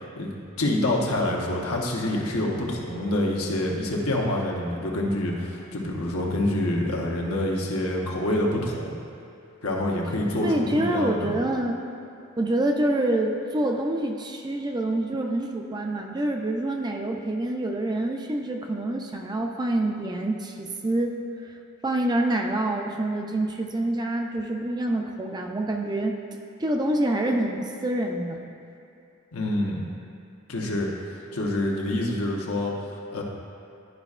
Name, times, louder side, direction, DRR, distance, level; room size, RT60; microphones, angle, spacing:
voice 1, 0.6-9.0 9.6-11.3 29.3-29.9 30.5-30.9 31.3-33.2, left 1 dB, 85° left, -1 dB, 1.0 m, -26 dB
voice 2, 10.4-11.8 12.4-21.2 21.8-26.2 26.6-28.4, right 1 dB, 20° right, 2 dB, 0.4 m, -26 dB
11.0 x 5.2 x 2.4 m, 2.7 s
head